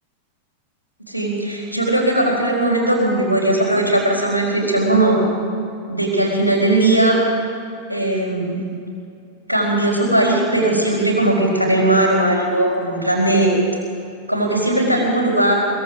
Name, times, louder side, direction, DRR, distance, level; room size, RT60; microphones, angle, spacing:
voice 1, 1.1-5.2 5.9-7.2 7.9-8.6 9.5-13.5 14.3-15.7, right 1 dB, 85° right, -7 dB, 4.2 m, -18 dB
23.0 x 21.5 x 6.2 m, 2.4 s
figure-of-eight pair, 90°, 0 cm